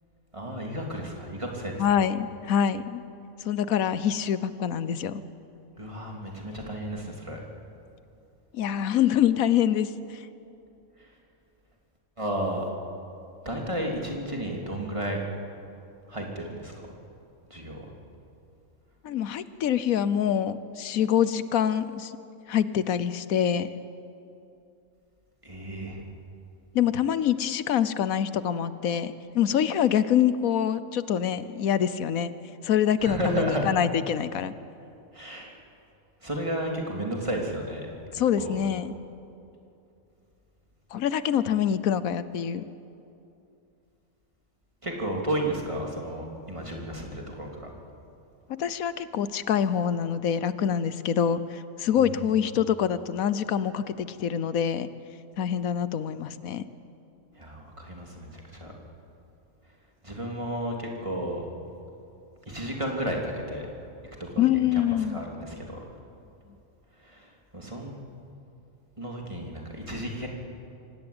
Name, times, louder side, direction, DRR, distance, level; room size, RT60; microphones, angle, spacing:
voice 1, 0.3-1.8 5.8-7.4 12.2-12.7 13.4-15.2 16.1-16.7 17.5-17.9 25.4-26.0 33.0-33.7 35.1-35.5 36.2-38.6 44.8-47.7 51.9-52.1 57.4-58.7 60.0-61.5 62.5-63.7 64.2-64.8 65.1-65.8 67.0-68.0 69.0-70.3, right 1 dB, 20° right, 0 dB, 3.2 m, -33 dB
voice 2, 1.8-3.0 3.4-5.2 8.5-10.3 19.0-22.2 22.5-23.7 26.7-32.3 32.6-34.5 38.1-38.9 40.9-42.6 48.5-54.9 55.4-56.6 64.4-65.2, left 9 dB, 85° left, 14 dB, 1.2 m, -25 dB
25.5 x 17.5 x 8.7 m, 2.7 s
omnidirectional pair, 1.4 m